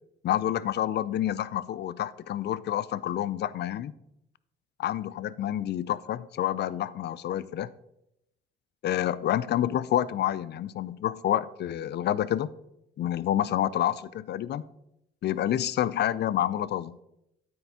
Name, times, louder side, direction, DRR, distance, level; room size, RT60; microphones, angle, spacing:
voice 1, 0.2-3.9 4.8-7.7 8.8-12.5 13.0-14.6 15.2-17.0, left 11 dB, 60° left, 16 dB, 0.4 m, -28 dB
9.3 x 4.5 x 5.5 m, 0.83 s
cardioid pair, 90°, 20 cm